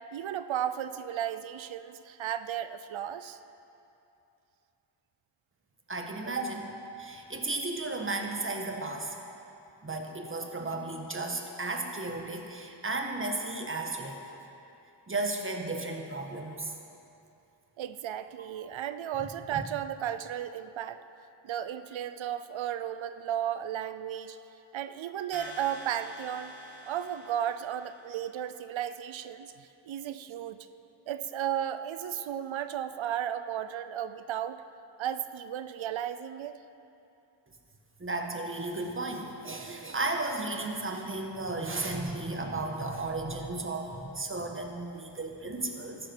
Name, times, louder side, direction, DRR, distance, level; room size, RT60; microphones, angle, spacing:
voice 1, 0.1-3.4 17.8-21.0 21.4-24.4 24.7-26.5 26.9-30.7 31.1-34.6 35.0-36.6, right 10 dB, 85° right, 12 dB, 0.6 m, -34 dB
voice 2, 5.9-6.7 7.0-9.1 9.8-14.2 15.1-16.7 38.0-46.1, right 2 dB, 25° right, 3 dB, 1.3 m, -34 dB
sound 1, 25.3-28.2, left 1 dB, 25° left, 1.7 m, -47 dB
14.0 x 11.0 x 4.4 m, 2.8 s
wide cardioid pair, 70°, 45 cm